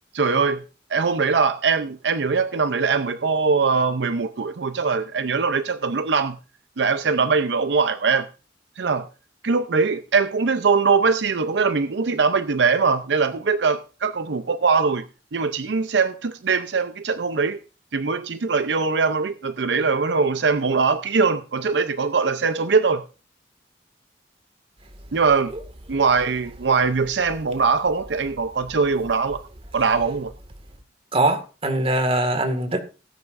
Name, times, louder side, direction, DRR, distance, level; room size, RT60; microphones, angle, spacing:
voice 1, 0.1-0.6 0.9-6.4 6.8-8.3 8.8-9.1 9.4-15.0 15.3-17.6 17.9-23.0 25.1-25.5 25.9-29.4 29.7-30.3, right 5 dB, 80° right, 0.6 m, -21 dB
voice 2, 31.1-32.8, right 2 dB, 35° right, 1.9 m, -22 dB
18.0 x 9.7 x 2.5 m
head